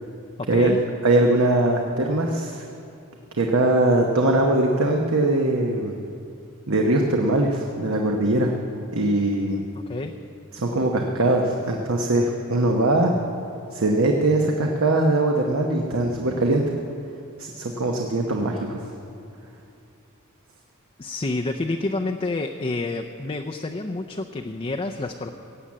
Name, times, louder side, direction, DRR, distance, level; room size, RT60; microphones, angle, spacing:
voice 1, 0.4-0.8 9.9-10.1 21.0-25.3, left 2 dB, 25° left, 3 dB, 0.5 m, -28 dB
voice 2, 1.0-2.7 3.4-5.9 6.7-8.5 8.9-9.6 10.5-13.1 13.7-16.8 17.4-18.8, right 2 dB, 70° right, 1 dB, 1.0 m, -21 dB
16.5 x 8.6 x 7.5 m, 2.6 s
head